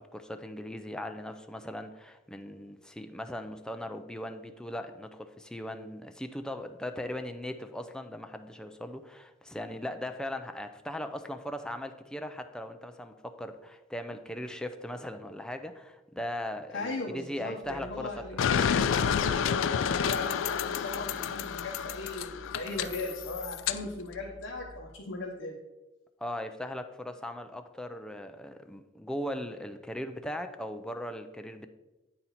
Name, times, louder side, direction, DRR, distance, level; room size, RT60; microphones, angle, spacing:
voice 1, 0.0-18.4 26.2-31.7, left 1 dB, 5° left, 7 dB, 0.4 m, -39 dB
voice 2, 16.7-25.6, left 2 dB, 70° left, -1 dB, 0.8 m, -38 dB
sound 1, 17.6-25.0, left 1 dB, 50° right, 1.7 m, -52 dB
sound 2, 18.4-23.8, left 7 dB, 85° left, 0.3 m, -29 dB
8.9 x 4.2 x 4.1 m, 1.1 s
head